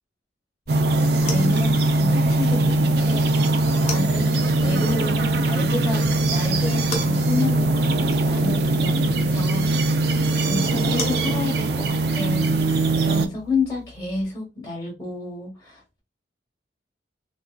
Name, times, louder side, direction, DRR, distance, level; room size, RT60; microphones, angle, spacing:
sound 1, 0.7-14.2, left 3 dB, 35° left, 0.7 m, -40 dB
sound 2, 0.7-13.3, right 2 dB, 60° right, 0.4 m, -21 dB
voice 1, 1.2-10.0 10.4-12.5 12.9-16.0, left 2 dB, 15° left, -3 dB, 1.0 m, -30 dB
3.4 x 2.5 x 2.2 m, 0.27 s
head